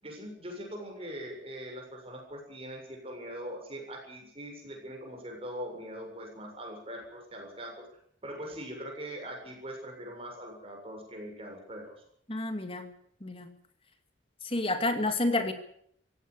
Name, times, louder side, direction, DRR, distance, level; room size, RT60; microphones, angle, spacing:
voice 1, 0.0-7.8 8.2-11.9, equal, 30° right, 2 dB, 7.4 m, -42 dB
voice 2, 12.3-12.9 13.2-13.5 14.4-15.5, left 2 dB, 30° left, 7 dB, 2.5 m, -29 dB
17.0 x 16.5 x 9.9 m, 0.66 s
head